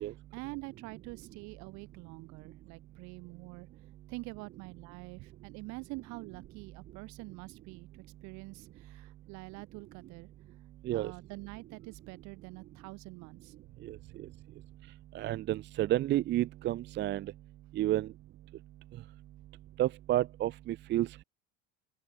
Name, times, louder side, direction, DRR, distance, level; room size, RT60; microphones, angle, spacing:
voice 1, 0.0-3.7 4.1-10.3 10.9-14.1, right 27 dB, 65° right, 4.8 m, -46 dB
voice 2, 15.1-17.3 17.8-18.1 19.8-21.2, right 14 dB, 35° right, 0.6 m, -30 dB
open air
supercardioid pair, 120°, 30 cm